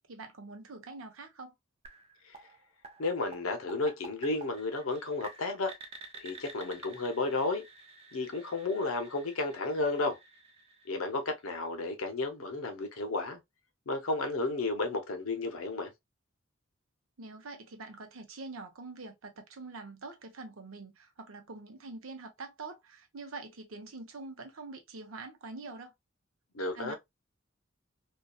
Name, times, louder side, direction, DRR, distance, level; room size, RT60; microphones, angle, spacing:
voice 1, 0.1-1.5 17.2-25.9 26.8-27.0, right 3 dB, 80° right, 0.7 m, -45 dB
sound 1, 1.8-11.6, right 3 dB, 30° right, 0.4 m, -52 dB
voice 2, 3.0-5.7 6.2-7.7 8.1-10.2 10.9-13.4 13.9-15.9 26.5-27.0, left 3 dB, 80° left, 0.7 m, -32 dB
2.7 x 2.3 x 2.2 m
head